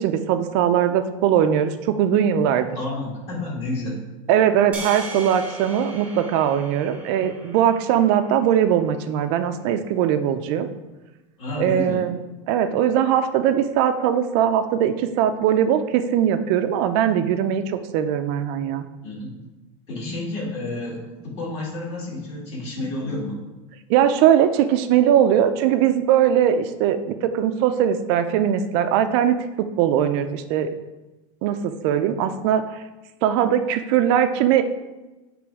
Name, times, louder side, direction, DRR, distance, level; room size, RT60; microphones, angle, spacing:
voice 1, 0.0-2.7 4.3-10.7 11.6-12.2 12.5-18.9 23.9-30.7 31.4-32.6 33.2-34.6, right 9 dB, 45° right, 9 dB, 0.5 m, -20 dB
voice 2, 2.8-4.0 11.4-12.0 19.0-19.4 19.9-23.4, left 2 dB, 35° left, -4 dB, 2.3 m, -30 dB
sound 1, 4.7-9.1, right 2 dB, 5° right, 0.9 m, -38 dB
7.9 x 3.3 x 4.8 m, 1.1 s
supercardioid pair, 170°, 18 cm